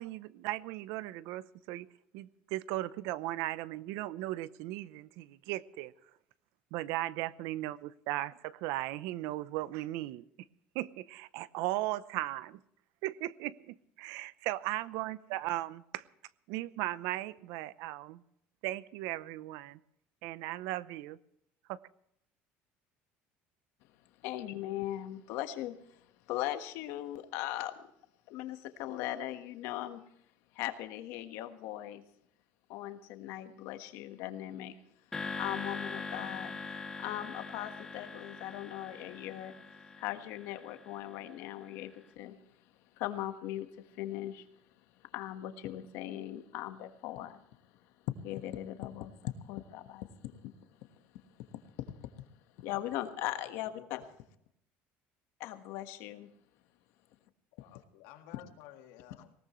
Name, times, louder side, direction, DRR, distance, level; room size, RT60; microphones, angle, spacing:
voice 1, 0.0-1.9 2.1-5.9 6.7-10.2 10.7-12.6 13.0-16.0 16.5-18.2 18.6-19.8 20.2-21.2 21.7-21.8, right 16 dB, 75° right, 18 dB, 0.7 m, -37 dB
voice 2, 24.2-27.8 28.3-30.0 30.5-32.0 32.7-34.7 35.4-39.5 40.0-42.4 43.0-44.5 45.1-47.4 48.1-50.5 50.8-50.9 51.5-52.1 52.6-54.0 55.4-56.3, left 13 dB, 70° left, 8 dB, 1.5 m, -39 dB
sound 1, 35.1-41.5, left 4 dB, 10° left, 2.2 m, -42 dB
voice 3, 57.6-59.3, left 12 dB, 90° left, 5 dB, 1.8 m, -53 dB
20.0 x 18.0 x 3.1 m, 0.72 s
cardioid pair, 150°, 5 cm